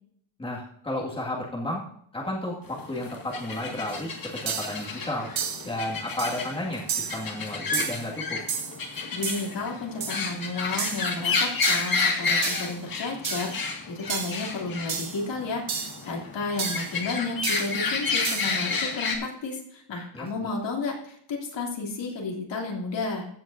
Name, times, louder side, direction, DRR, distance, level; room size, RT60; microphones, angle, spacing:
voice 1, 0.4-1.8 2.1-5.3 5.6-8.4 20.1-20.5, left 1 dB, 10° left, -4 dB, 2.0 m, -32 dB
sound 1, 2.7-19.2, left 4 dB, 45° left, 2.0 m, -31 dB
sound 2, 3.9-4.0 4.5-4.8 5.4-5.7 6.2-6.4 6.9-7.3 7.7-8.1 8.5-8.8 9.2-9.5 10.0-10.3 10.8-11.1 11.6-12.0 12.4-12.8 13.2-13.6 14.1-14.4 14.9-15.2 15.7-16.0 16.6-16.9 17.4-17.8 18.2-18.6, right 6 dB, 70° right, 2.1 m, -31 dB
voice 2, 9.1-23.3, left 3 dB, 65° left, -1 dB, 3.1 m, -32 dB
15.5 x 8.9 x 2.7 m, 0.69 s
wide cardioid pair, 170°, 48 cm